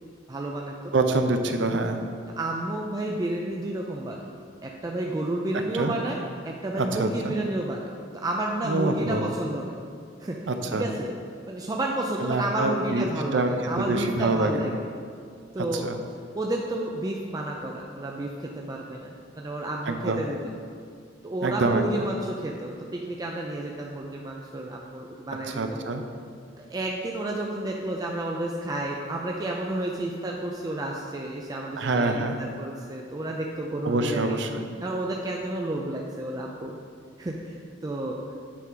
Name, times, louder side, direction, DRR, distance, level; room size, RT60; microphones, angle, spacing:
voice 1, 0.0-0.9 1.7-1.8 2.4-4.2 4.6-7.9 8.2-9.7 10.2-10.4 10.7-11.1 11.5-14.8 15.5-15.9 16.3-20.4 21.2-25.8 26.6-34.4 34.8-36.8 37.2-38.2, right 1 dB, 20° right, -1 dB, 0.4 m, -31 dB
voice 2, 0.9-2.0 5.7-5.9 6.8-7.3 8.6-9.3 10.5-10.9 12.2-13.1 13.3-13.5 13.8-14.7 15.6-16.0 19.9-20.2 21.4-22.1 25.5-26.0 31.8-32.4 33.8-34.7, right 2 dB, 70° right, 6 dB, 0.6 m, -26 dB
8.3 x 3.9 x 4.6 m, 2.2 s
head